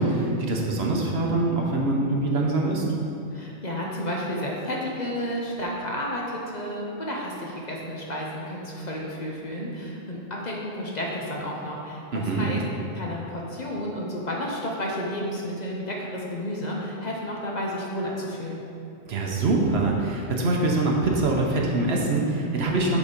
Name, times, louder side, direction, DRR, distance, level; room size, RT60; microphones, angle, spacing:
voice 1, 0.0-2.8 12.1-12.5 19.1-23.0, right 2 dB, 60° right, -1 dB, 1.1 m, -24 dB
voice 2, 3.3-12.6 12.9-18.6, equal, 40° left, -3 dB, 0.8 m, -31 dB
7.2 x 4.1 x 5.2 m, 2.6 s
omnidirectional pair, 1.2 m